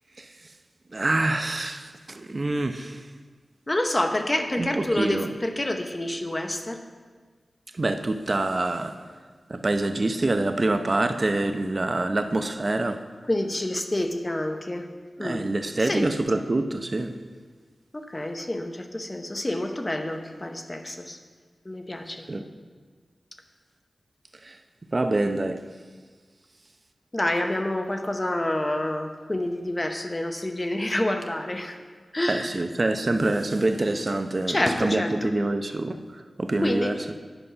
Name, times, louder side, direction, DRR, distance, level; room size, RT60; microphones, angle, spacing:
voice 1, 0.2-0.5 0.9-3.1 4.6-5.3 7.7-9.1 9.5-13.0 15.2-17.2 22.3-22.4 24.4-24.6 24.9-25.6 32.3-37.0, right 2 dB, 40° right, 0.6 m, -26 dB
voice 2, 3.7-6.8 13.3-14.9 15.2-15.5 15.8-16.1 17.9-21.2 21.6-22.2 27.1-31.8 32.1-32.6 34.5-35.3 36.6-36.9, left 1 dB, 25° left, 0.8 m, -28 dB
10.0 x 5.5 x 5.6 m
wide cardioid pair, 65°, 0 cm